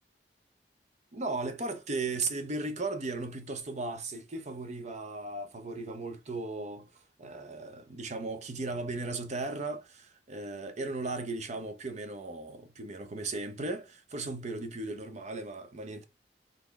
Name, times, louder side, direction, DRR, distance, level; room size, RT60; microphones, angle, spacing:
voice 1, 1.1-6.9 7.2-16.0, right 3 dB, 40° right, 0.8 m, -36 dB
4.1 x 3.5 x 3.4 m
head